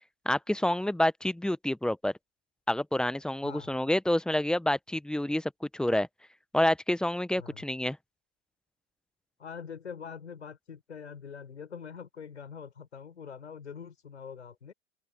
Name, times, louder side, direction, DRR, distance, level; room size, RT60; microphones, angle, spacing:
voice 1, 0.2-2.1 2.7-6.1 6.5-8.0, left 1 dB, ahead, 1.2 m, -28 dB
voice 2, 3.4-3.7 7.4-7.6 9.4-14.7, left 7 dB, 70° left, 7.5 m, -44 dB
open air
figure-of-eight pair, 95°, 35 cm